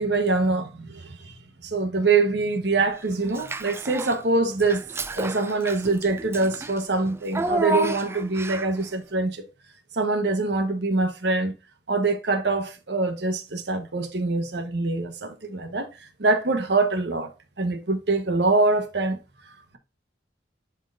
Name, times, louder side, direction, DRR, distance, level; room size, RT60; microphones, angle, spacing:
voice 1, 0.0-1.4 1.6-4.8 5.1-9.5 9.9-11.5 11.9-15.9 16.2-19.2 19.5-19.8, right 3 dB, 65° right, 1.2 m, -24 dB
Child speech kid speaking / Bathtub (filling or washing), 3.3-4.2 4.6-8.8, right 2 dB, 15° right, 0.3 m, -31 dB
11.0 x 4.6 x 2.6 m
head